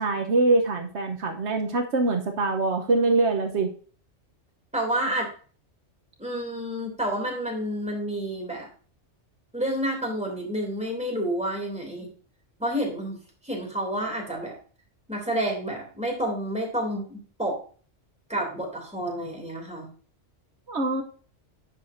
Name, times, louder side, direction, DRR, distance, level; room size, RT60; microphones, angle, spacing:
voice 1, 0.0-3.7 20.7-21.0, right 3 dB, 70° right, 4 dB, 1.3 m, -24 dB
voice 2, 4.7-5.3 6.2-8.7 9.5-12.1 12.6-13.2 13.4-14.6 15.1-17.6 18.3-19.9, right 1 dB, 5° right, 0 dB, 2.7 m, -29 dB
10.5 x 7.5 x 2.6 m, 0.40 s
omnidirectional pair, 1.2 m